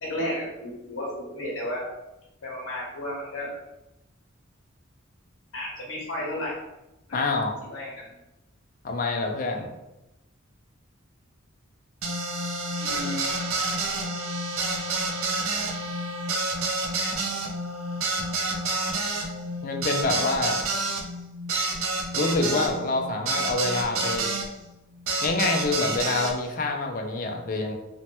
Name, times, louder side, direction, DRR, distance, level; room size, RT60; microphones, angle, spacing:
voice 1, 0.0-1.9 2.4-3.5 5.5-6.5 7.1-7.2 7.7-8.1 12.8-13.6, left 1 dB, 75° left, -5 dB, 0.8 m, -33 dB
voice 2, 7.1-7.5 8.8-9.7 19.6-20.6 22.1-24.3 25.2-27.7, left 3 dB, 40° left, 3 dB, 0.4 m, -26 dB
sound 1, 12.0-24.5 25.1-26.3, right 2 dB, 80° right, 0.5 m, -29 dB
3.1 x 2.1 x 2.8 m, 0.95 s
head